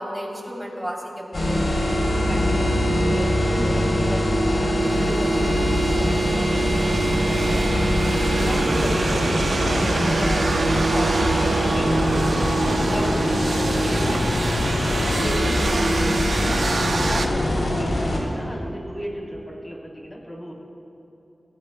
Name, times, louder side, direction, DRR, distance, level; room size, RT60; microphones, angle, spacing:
voice 1, 0.0-1.9 17.6-17.7, equal, 5° right, -3 dB, 3.5 m, -34 dB
sound 1, 1.3-18.2, equal, 65° left, 3.4 m, -22 dB
voice 2, 2.3-2.7 3.0-7.8 8.3-12.1 12.6-14.3 14.9-16.5 17.0-20.5, equal, 25° left, -4 dB, 3.6 m, -34 dB
sound 2, 4.8-17.3, right 3 dB, 75° right, 0.8 m, -27 dB
25.0 x 18.0 x 2.3 m, 2.8 s
wide cardioid pair, 75°, 0 cm